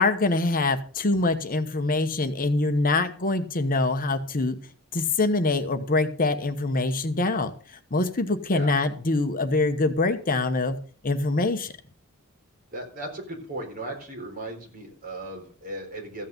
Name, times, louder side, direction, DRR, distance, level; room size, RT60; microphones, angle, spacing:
voice 1, 0.0-4.5 4.9-7.5 7.9-10.8 11.0-11.7, left 2 dB, 40° left, 8 dB, 1.0 m, -24 dB
voice 2, 12.7-16.3, right 1 dB, 40° right, 2 dB, 4.2 m, -36 dB
14.5 x 8.6 x 5.3 m, 0.40 s
head